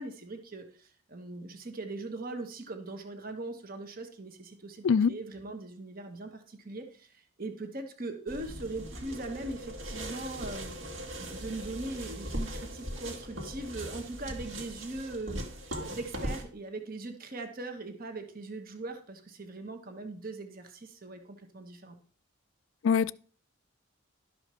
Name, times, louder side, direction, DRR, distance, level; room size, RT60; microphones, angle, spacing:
voice 1, 0.0-15.4 15.8-22.0, right 2 dB, 45° right, 1.2 m, -40 dB
voice 2, 4.8-5.1 22.8-23.1, left 6 dB, 60° left, 0.4 m, -23 dB
sound 1, 8.3-16.4, equal, 60° right, 2.0 m, -39 dB
12.0 x 5.0 x 6.2 m
head